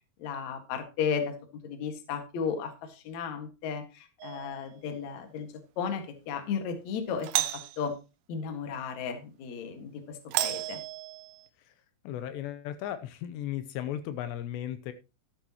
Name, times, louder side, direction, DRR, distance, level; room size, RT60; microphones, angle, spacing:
voice 1, 0.2-1.3 1.6-5.5 5.8-7.3 7.5-7.9 8.3-10.8, left 6 dB, 55° left, 7 dB, 2.3 m, -34 dB
Doorbell, 4.2-4.7 7.2-7.8 10.3-11.5, right 14 dB, 80° right, 2.8 m, -32 dB
voice 2, 12.0-14.9, left 11 dB, 80° left, 11 dB, 2.8 m, -36 dB
13.0 x 10.0 x 2.9 m, 0.29 s
omnidirectional pair, 5.1 m